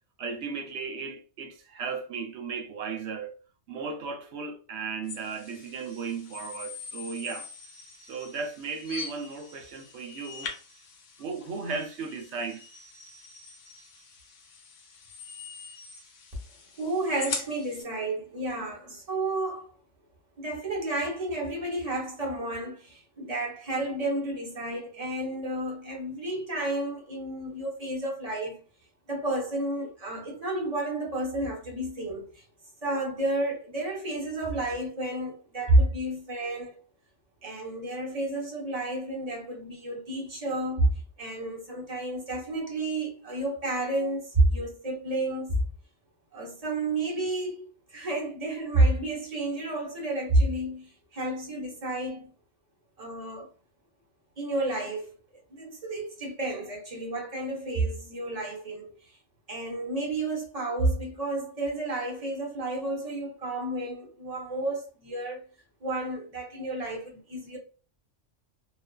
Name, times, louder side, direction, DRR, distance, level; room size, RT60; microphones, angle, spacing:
voice 1, 0.2-3.3 3.7-7.5 8.0-10.5 11.2-12.6, right 5 dB, 70° right, 0.8 m, -35 dB
sound 1, 5.1-17.8, left 5 dB, 70° left, 1.0 m, -43 dB
voice 2, 16.8-19.7 20.4-28.6 29.1-32.4 32.8-36.7 37.4-40.9 41.2-45.6 46.3-52.3 53.0-53.5 54.4-55.1 55.5-58.9 59.5-65.4 65.8-67.6, right 2 dB, 35° right, 0.7 m, -30 dB
2.5 x 2.3 x 2.2 m
omnidirectional pair, 1.3 m